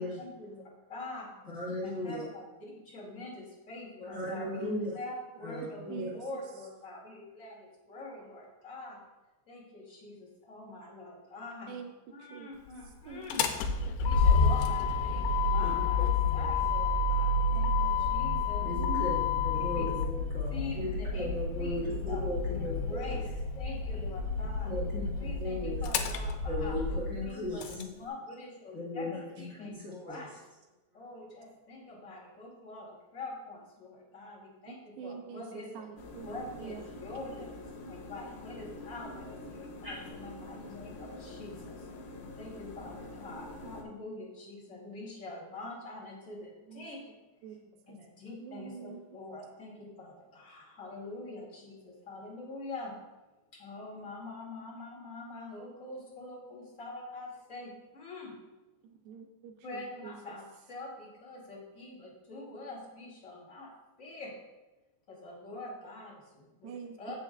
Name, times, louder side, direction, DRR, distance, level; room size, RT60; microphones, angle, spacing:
voice 1, 0.0-1.3 1.8-9.0 9.5-11.8 12.1-13.5 14.0-18.7 19.7-19.9 20.5-21.3 21.6-21.8 22.0-22.3 22.5-24.7 25.2-30.4 30.9-35.7 36.2-41.9 42.4-47.1 47.9-53.0 53.5-58.3 59.6-63.7 64.0-64.3 65.1-67.1, left 2 dB, 25° left, -5 dB, 2.0 m, -45 dB
voice 2, 1.5-2.2 4.1-4.9 5.4-6.1 15.6-15.8 16.3-16.5 18.5-23.0 24.6-25.8 26.5-27.8 28.7-30.2 39.8-40.0, left 1 dB, 45° left, -8 dB, 1.0 m, -37 dB
voice 3, 5.8-6.2 11.7-11.9 12.2-12.5 13.0-13.3 13.8-14.0 14.3-14.6 15.1-15.3 18.6-19.5 21.3-21.4 34.7-36.8 37.4-37.5 46.7-46.9 47.4-48.0 48.3-49.2 58.8-60.2 66.6-67.1, right 6 dB, 80° right, 3 dB, 2.6 m, -45 dB
Motor vehicle (road), 13.1-27.8, left 4 dB, 90° left, 2.9 m, -29 dB
sound 1, 36.0-43.8, left 2 dB, 75° left, 2.7 m, -46 dB
15.0 x 6.5 x 2.5 m, 1.1 s
omnidirectional pair, 5.0 m